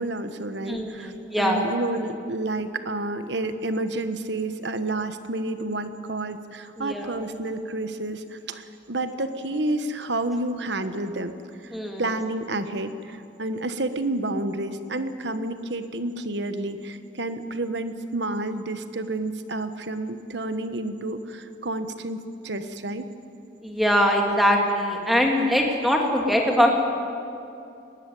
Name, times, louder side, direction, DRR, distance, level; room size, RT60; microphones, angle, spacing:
voice 1, 0.0-11.3 11.6-23.1, right 2 dB, 65° right, 10 dB, 1.3 m, -30 dB
voice 2, 0.7-1.6 6.8-7.1 11.7-12.0 23.6-26.7, equal, ahead, 1 dB, 2.5 m, -22 dB
21.5 x 19.5 x 9.3 m, 2.6 s
head